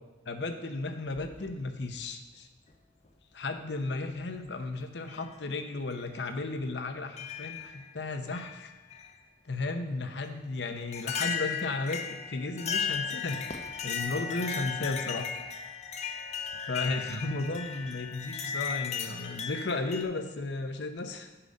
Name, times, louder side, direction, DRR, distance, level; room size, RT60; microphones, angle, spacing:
voice 1, 0.3-2.5 3.3-8.7 9.5-13.5 13.8-15.3 16.6-21.3, left 3 dB, 70° left, 7 dB, 0.8 m, -34 dB
sound 1, 1.1-1.9 3.1-3.2 4.2-4.5 5.1-5.2 5.9-6.0 7.2-7.9 8.3-9.1 10.2-10.3 10.9-20.0, left 6 dB, 40° left, 0.7 m, -36 dB
8.8 x 5.7 x 5.2 m, 1.1 s
head